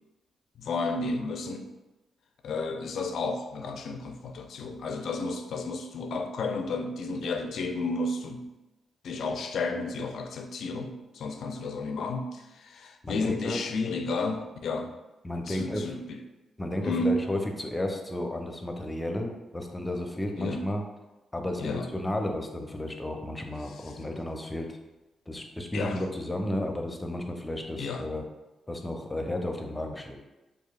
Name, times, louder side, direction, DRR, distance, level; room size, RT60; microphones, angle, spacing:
voice 1, 0.6-1.7 2.4-8.5 9.0-14.9 15.5-16.2 16.8-17.2 20.4-20.6 21.6-21.9 25.7-26.1 27.8-28.0, left 3 dB, 65° left, 5 dB, 0.4 m, -32 dB
voice 2, 13.0-13.6 15.2-16.0 16.6-20.8 21.3-24.8 25.3-28.2 28.7-30.2, left 1 dB, 20° left, 3 dB, 0.6 m, -33 dB
4.4 x 2.7 x 2.4 m, 1.1 s
hypercardioid pair, 40°, 0 cm